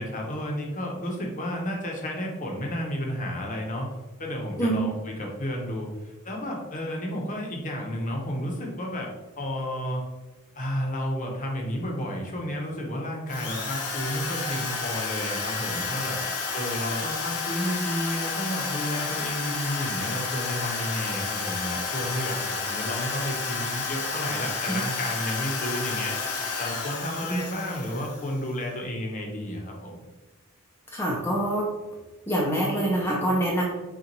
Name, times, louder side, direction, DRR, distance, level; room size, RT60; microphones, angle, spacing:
voice 1, 0.0-3.9 4.2-9.1 9.4-10.0 10.5-16.2 16.5-26.2 26.6-30.0, equal, 35° left, 0 dB, 0.9 m, -32 dB
Drill, 13.3-28.5, left 4 dB, 90° left, 1.1 m, -31 dB
voice 2, 30.9-31.7 32.3-33.6, right 1 dB, 10° left, -3 dB, 0.6 m, -25 dB
6.6 x 2.5 x 3.0 m, 1.1 s
head